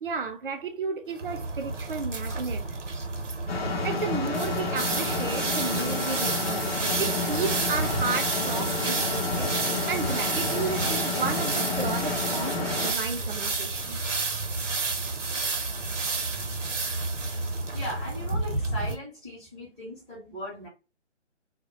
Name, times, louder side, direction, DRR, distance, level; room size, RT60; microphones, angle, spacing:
voice 1, 0.0-2.6 3.8-9.5 9.9-14.0 16.4-16.5, right 5 dB, 50° right, 0.5 m, -33 dB
sound 1, 1.1-18.9, right 3 dB, 90° right, 0.7 m, -30 dB
sound 2, 3.5-12.9, left 4 dB, 55° left, 0.7 m, -30 dB
voice 2, 17.7-20.7, equal, 5° left, 0.5 m, -38 dB
2.1 x 2.1 x 2.8 m
figure-of-eight pair, 150°, 35 cm